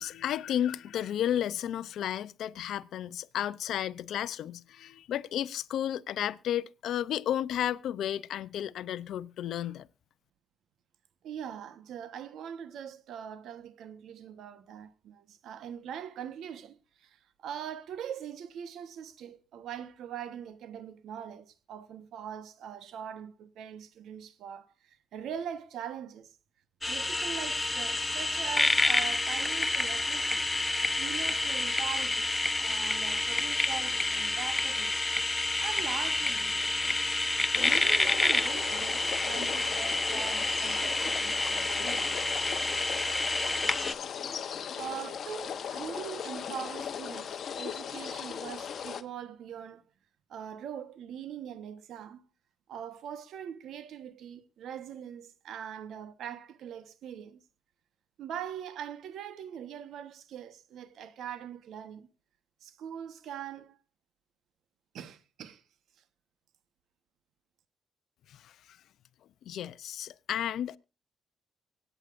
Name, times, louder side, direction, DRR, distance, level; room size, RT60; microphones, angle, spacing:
voice 1, 0.0-9.9 68.3-68.8 69.4-70.8, left 11 dB, 75° left, 0.5 m, -33 dB
voice 2, 11.2-26.3 26.8-30.5 31.0-35.1 35.6-36.9 37.5-42.2 44.7-49.8 50.3-52.2 52.7-57.4 58.2-62.1 62.6-63.8 64.9-65.6, right 9 dB, 75° right, 1.1 m, -42 dB
sound 1, 26.8-43.9, left 2 dB, 15° left, 0.9 m, -29 dB
sound 2, 37.5-49.0, left 7 dB, 55° left, 1.0 m, -38 dB
24.5 x 9.1 x 2.5 m
cardioid pair, 90°, 0 cm